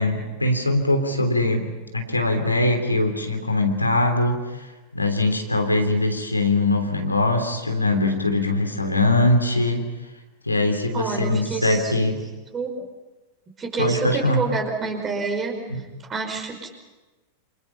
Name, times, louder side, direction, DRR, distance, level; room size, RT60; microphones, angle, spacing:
voice 1, 0.0-4.7 4.9-9.8 10.5-12.2 13.8-14.4 15.7-15.8, left 2 dB, 85° left, 4 dB, 3.3 m, -22 dB
voice 2, 10.9-11.9 12.5-12.9 13.6-15.6 16.1-16.7, right 4 dB, 20° right, 3 dB, 5.3 m, -28 dB
28.0 x 27.0 x 5.7 m, 1.2 s
figure-of-eight pair, 90°, 0 cm